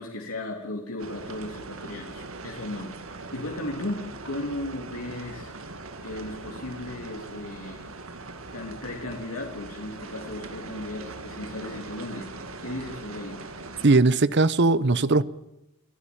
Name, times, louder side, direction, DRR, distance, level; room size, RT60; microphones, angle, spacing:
voice 1, 0.0-5.5 6.0-8.0 8.5-12.3 12.6-13.5, left 1 dB, 85° left, 3.1 m, -36 dB
sound 1, 1.0-14.0, right 3 dB, 70° right, 2.2 m, -41 dB
voice 2, 13.8-15.2, right 3 dB, 55° right, 0.9 m, -19 dB
29.5 x 11.5 x 8.8 m
head